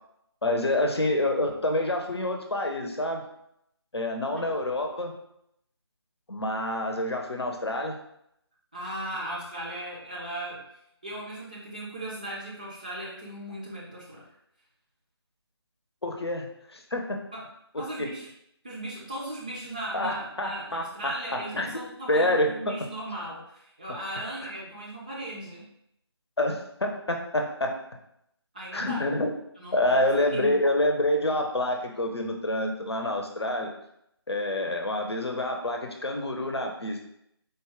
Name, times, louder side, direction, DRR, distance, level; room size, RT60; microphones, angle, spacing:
voice 1, 0.4-3.2 3.9-5.1 6.3-8.0 16.0-17.2 17.7-18.1 19.9-21.1 21.5-21.7 22.1-22.5 24.1-24.5 26.4-27.7 28.7-29.3 29.7-33.7 34.3-37.0, left 1 dB, 70° left, 3 dB, 0.7 m, -27 dB
voice 2, 8.7-10.6 11.0-14.2 17.3-17.4 17.7-18.3 18.6-25.7 28.5-29.1 29.6-30.5, right 1 dB, 20° right, -6 dB, 0.4 m, -37 dB
4.0 x 2.2 x 3.6 m, 0.76 s
figure-of-eight pair, 155°, 14 cm